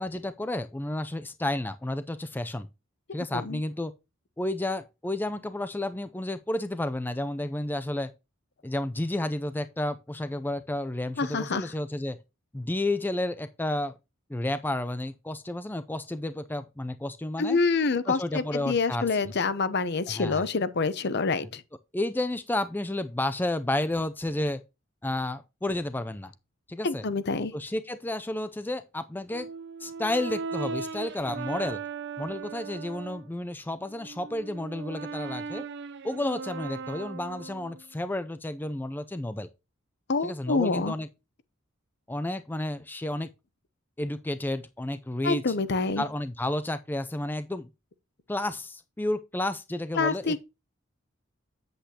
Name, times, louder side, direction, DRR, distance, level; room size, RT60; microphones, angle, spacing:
voice 1, 0.0-2.7 3.1-3.9 4.4-8.1 8.6-12.2 12.5-14.0 14.3-17.6 18.1-19.3 20.1-20.4 21.9-24.6 25.0-26.3 26.7-27.0 27.5-29.5 29.8-31.8 32.2-35.6 36.0-39.5 40.2-41.1 42.1-43.3 44.0-45.4 46.0-47.7 48.3-50.5, left 1 dB, 10° left, 0.4 m, -31 dB
voice 2, 11.2-11.7 17.4-21.6 26.8-27.5 40.1-40.9 45.2-46.0 49.9-50.4, left 4 dB, 55° left, 0.8 m, -27 dB
Brass instrument, 29.3-33.3 33.8-37.9, right 5 dB, 60° right, 0.6 m, -38 dB
8.4 x 7.9 x 2.9 m
head